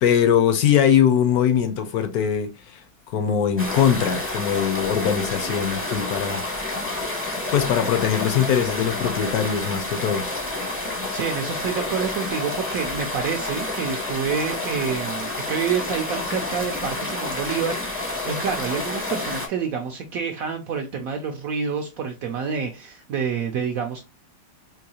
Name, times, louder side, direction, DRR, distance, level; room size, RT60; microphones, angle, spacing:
voice 1, 0.0-6.5 7.5-10.3, left 8 dB, 70° left, 0.9 m, -21 dB
sound 1, 3.6-19.5, left 2 dB, 15° left, 0.5 m, -29 dB
voice 2, 11.1-24.0, right 6 dB, 70° right, 0.8 m, -28 dB
3.8 x 2.7 x 2.8 m
omnidirectional pair, 1.9 m